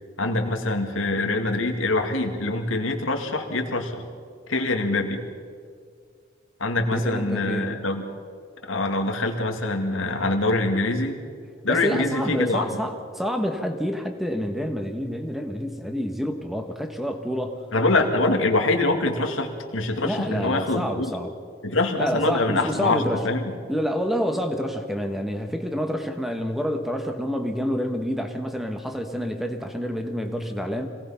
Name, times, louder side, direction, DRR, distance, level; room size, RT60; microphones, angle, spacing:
voice 1, 0.2-4.0 4.5-5.2 6.6-8.0 8.7-11.2 11.6-12.7 17.7-21.1 21.6-23.5, left 2 dB, 90° left, 4 dB, 2.2 m, -24 dB
voice 2, 6.9-7.8 11.7-17.7 18.3-18.4 20.0-21.3 22.0-23.3 23.7-30.9, equal, ahead, 6 dB, 1.3 m, -28 dB
25.5 x 18.5 x 5.8 m, 2.1 s
head